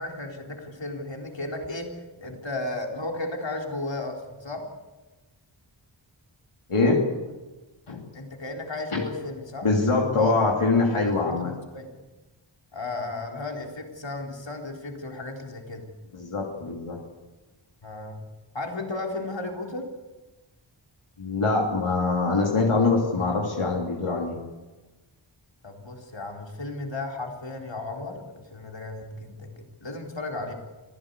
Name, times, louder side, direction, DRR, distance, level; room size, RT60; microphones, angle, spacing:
voice 1, 0.0-4.6 8.1-9.7 10.1-10.7 11.0-11.9 12.7-15.8 17.8-18.2 18.5-19.9 25.6-30.5, left 2 dB, 60° left, 2 dB, 4.0 m, -34 dB
voice 2, 6.7-7.0 7.9-8.0 8.9-9.0 9.6-11.5 16.1-17.0 21.2-24.4, left 3 dB, 80° left, 0 dB, 3.0 m, -23 dB
25.0 x 15.5 x 8.3 m, 1.2 s
wide cardioid pair, 55°, 49 cm